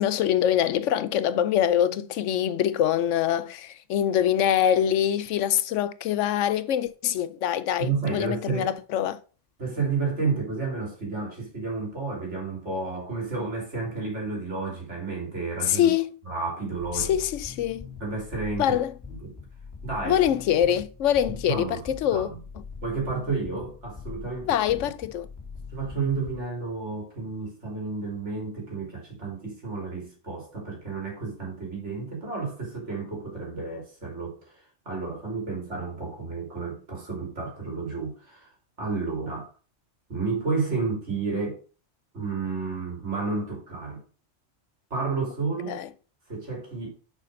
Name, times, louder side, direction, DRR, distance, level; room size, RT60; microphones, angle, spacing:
voice 1, 0.0-9.2 15.7-16.1 16.9-17.9 18.6-18.9 20.0-22.3 24.5-25.3 45.7-45.9, left 10 dB, 85° left, 0.9 m, -24 dB
voice 2, 7.8-8.7 9.6-15.9 16.2-17.2 18.0-18.8 19.2-19.3 19.8-20.2 21.3-21.8 22.1-22.4 22.8-24.9 25.7-38.5 38.8-39.5 40.1-41.6 42.1-44.0 44.9-45.8 46.3-46.9, right 4 dB, 70° right, 3.2 m, -31 dB
sound 1, 16.7-26.4, left 5 dB, 15° left, 2.1 m, -42 dB
6.7 x 5.1 x 5.2 m
omnidirectional pair, 1.2 m